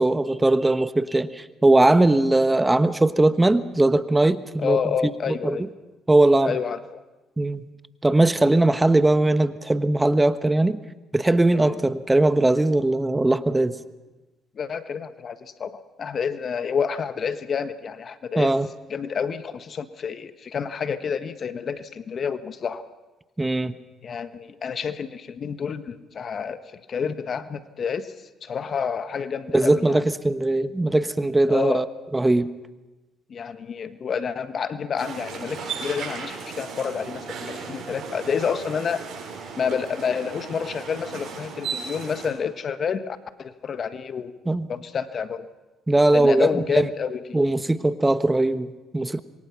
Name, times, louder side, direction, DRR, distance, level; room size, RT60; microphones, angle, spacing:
voice 1, 0.0-4.8 5.4-5.6 6.1-6.6 7.4-7.6 8.0-10.8 11.1-13.7 18.3-18.7 23.4-23.7 29.5-31.8 32.1-32.5 44.5-44.7 45.9-46.5 46.7-46.9 47.3-49.2, right 2 dB, 15° right, 12 dB, 1.2 m, -20 dB
voice 2, 4.6-5.6 6.4-7.0 11.5-11.8 14.5-18.6 18.9-22.8 24.0-28.1 28.4-30.0 31.5-31.9 33.3-39.0 39.6-44.3 44.7-45.5 46.1-47.2, left 6 dB, 50° left, 11 dB, 1.4 m, -29 dB
sound 1, 35.0-42.3, right 5 dB, 65° right, 6.8 m, -36 dB
27.0 x 23.0 x 5.9 m, 1.1 s
supercardioid pair, 60°, 0 cm